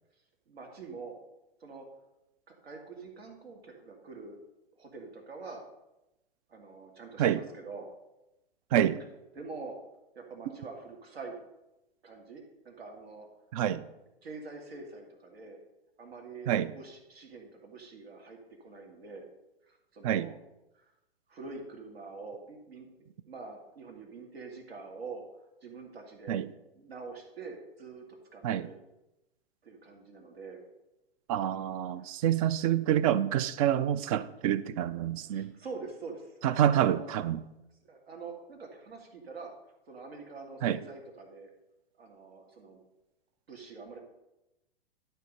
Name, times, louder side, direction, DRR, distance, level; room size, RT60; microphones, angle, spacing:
voice 1, 0.5-1.2 1.6-1.9 2.5-4.4 4.8-5.6 6.5-7.9 9.4-9.8 10.1-11.4 12.0-13.3 14.2-15.6 16.0-19.2 19.7-20.3 20.7-20.9 21.3-22.9 23.3-25.2 25.6-26.4 26.7-28.1 28.3-28.8 29.6-30.6 31.5-32.1 35.3-36.3 36.8-37.1 37.8-39.5 39.9-41.5 42.0-42.8 43.5-44.0, right 4 dB, 75° right, 2.4 m, -45 dB
voice 2, 31.3-35.5 36.4-37.4 40.6-40.8, right 10 dB, 35° right, 0.4 m, -27 dB
11.5 x 4.6 x 5.3 m
hypercardioid pair, 115°, 31 cm